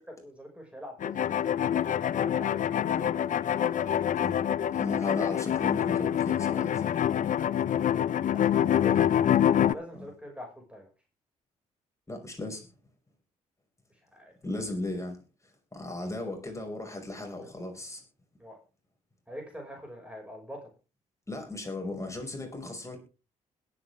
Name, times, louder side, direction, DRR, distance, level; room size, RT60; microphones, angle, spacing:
voice 1, 0.1-3.3 8.3-9.0 9.5-10.9 14.1-14.3 18.4-18.6 19.3-20.7, equal, 5° right, 5.7 m, -44 dB
sound 1, 1.0-9.7, left 10 dB, 50° left, 0.6 m, -26 dB
voice 2, 4.7-6.8 9.9-10.1 12.1-12.7 14.4-18.0 21.3-23.0, left 2 dB, 15° left, 5.6 m, -37 dB
21.0 x 8.7 x 3.6 m
hypercardioid pair, 45°, 17 cm